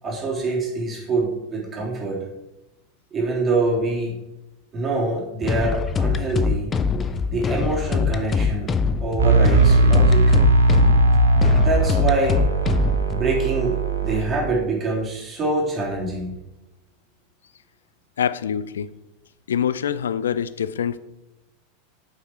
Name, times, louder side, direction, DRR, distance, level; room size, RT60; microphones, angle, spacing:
voice 1, 0.0-2.2 3.1-4.1 4.7-6.7 7.3-8.7 9.0-10.4 11.6-12.4 13.1-13.8 14.0-16.4, right 3 dB, 30° right, -2 dB, 3.7 m, -25 dB
sound 1, 5.4-13.1, left 5 dB, 25° left, 0.8 m, -23 dB
sound 2, 9.2-14.2, right 2 dB, 80° right, 1.2 m, -18 dB
voice 2, 18.2-18.9 19.5-21.0, left 8 dB, 75° left, 16 dB, 0.5 m, -25 dB
8.3 x 8.1 x 4.7 m, 0.96 s
figure-of-eight pair, 90°, 0 cm